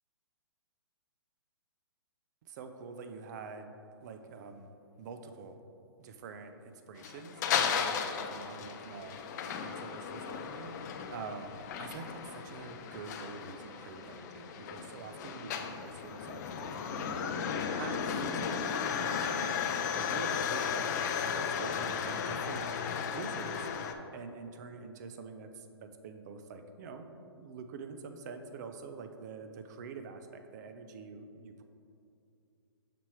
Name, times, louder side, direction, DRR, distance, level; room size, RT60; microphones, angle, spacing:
voice 1, 2.4-3.7 4.0-5.6 6.0-9.2 9.6-20.9 21.3-23.7 24.1-31.6, right 5 dB, 40° right, 7 dB, 0.5 m, -46 dB
sound 1, 7.0-23.9, left 7 dB, 40° left, 0.5 m, -35 dB
6.0 x 4.3 x 4.8 m, 2.5 s
hypercardioid pair, 140°, 14 cm